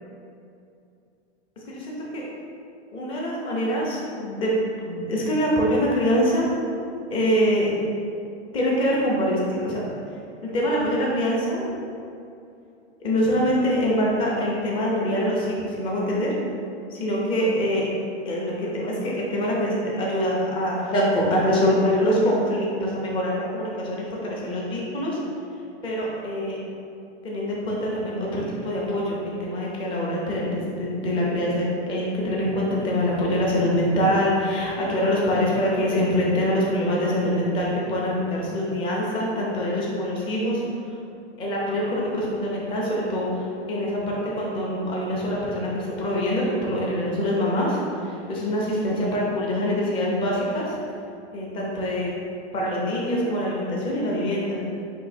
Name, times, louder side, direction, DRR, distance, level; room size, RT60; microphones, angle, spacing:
voice 1, 1.7-2.3 2.9-4.5 4.8-6.5 7.1-7.7 8.5-9.8 10.4-11.6 13.0-16.3 16.9-17.9 18.2-25.2 25.8-26.6 27.2-40.6 41.4-50.8 51.3-52.1 52.5-54.6, equal, 15° left, -4 dB, 0.5 m, -24 dB
4.5 x 2.8 x 4.1 m, 2.6 s
supercardioid pair, 155°, 34 cm